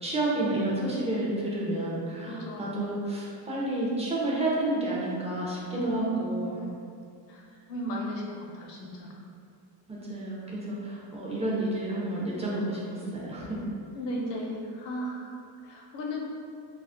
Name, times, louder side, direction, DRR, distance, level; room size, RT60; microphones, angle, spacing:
voice 1, 0.0-6.6 9.9-13.6, right 1 dB, 15° right, -5 dB, 0.5 m, -30 dB
voice 2, 2.2-2.8 5.7-6.4 7.3-9.1 13.9-16.2, equal, 65° left, -1 dB, 0.7 m, -35 dB
2.3 x 2.0 x 3.5 m, 2.4 s
cardioid pair, 115°, 46 cm